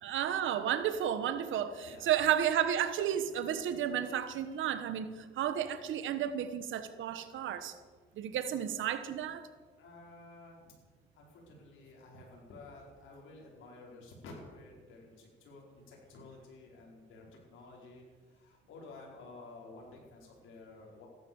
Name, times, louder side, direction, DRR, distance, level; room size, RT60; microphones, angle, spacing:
voice 1, 0.0-7.7 8.2-9.4, right 9 dB, 80° right, 11 dB, 1.3 m, -32 dB
voice 2, 9.7-10.7 11.1-21.1, left 3 dB, 80° left, -2 dB, 5.0 m, -52 dB
16.5 x 12.0 x 7.1 m, 1.4 s
cardioid pair, 90°, 20 cm